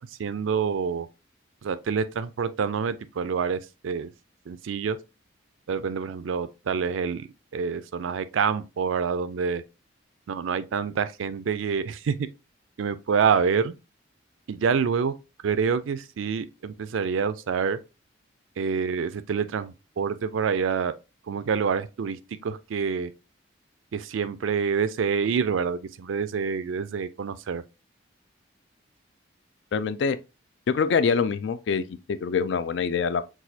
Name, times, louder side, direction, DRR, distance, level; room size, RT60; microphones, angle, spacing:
voice 1, 0.2-1.1 1.6-4.1 4.5-5.0 5.7-9.6 10.3-12.2 12.8-13.7 14.5-15.1 15.4-17.8 18.6-20.9 21.3-23.1 23.9-27.6, right 6 dB, 85° right, 0.4 m, -27 dB
voice 2, 29.7-30.2 30.7-31.8 32.1-33.2, left 5 dB, 65° left, 0.3 m, -24 dB
6.1 x 2.4 x 2.7 m
head